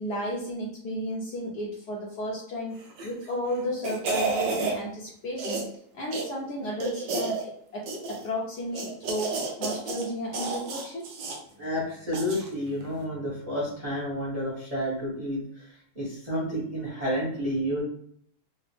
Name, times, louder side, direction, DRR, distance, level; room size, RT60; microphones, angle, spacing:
voice 1, 0.0-5.6 5.9-11.1, equal, 65° left, -3 dB, 1.1 m, -33 dB
sound 1, 2.9-3.3 3.6-4.8 5.4-5.8 6.1-6.3 6.8-7.4 7.9-8.3 8.7-10.1 10.3-11.4 12.1-12.5 12.8-12.9, right 3 dB, 70° right, 1.4 m, -31 dB
voice 2, 11.6-15.7 15.9-17.8, equal, 25° right, -6 dB, 0.8 m, -30 dB
4.0 x 2.0 x 3.1 m, 0.62 s
omnidirectional pair, 2.2 m